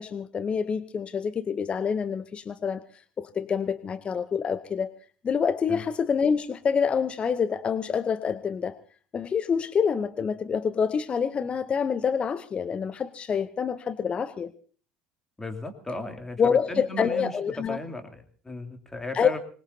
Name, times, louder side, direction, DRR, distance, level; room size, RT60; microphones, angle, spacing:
voice 1, 0.0-2.8 3.2-4.9 5.2-8.8 9.1-14.5 16.4-17.8 19.1-19.3, left 6 dB, 30° left, 14 dB, 0.8 m, -27 dB
voice 2, 15.4-19.4, left 2 dB, 10° left, 5 dB, 2.8 m, -36 dB
25.0 x 20.0 x 2.8 m, 0.43 s
figure-of-eight pair, 65°, 4 cm